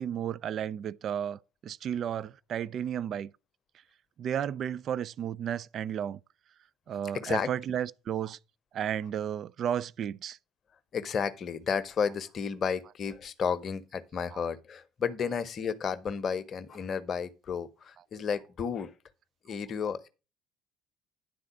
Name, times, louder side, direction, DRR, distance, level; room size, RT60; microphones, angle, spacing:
voice 1, 0.0-3.3 4.2-6.2 6.9-8.4 8.7-10.4 14.3-14.4, right 9 dB, 45° right, 0.4 m, -33 dB
voice 2, 7.1-7.5 10.9-18.9 19.4-20.1, left 6 dB, 40° left, 0.9 m, -32 dB
10.0 x 4.0 x 6.9 m
figure-of-eight pair, 55°, 0 cm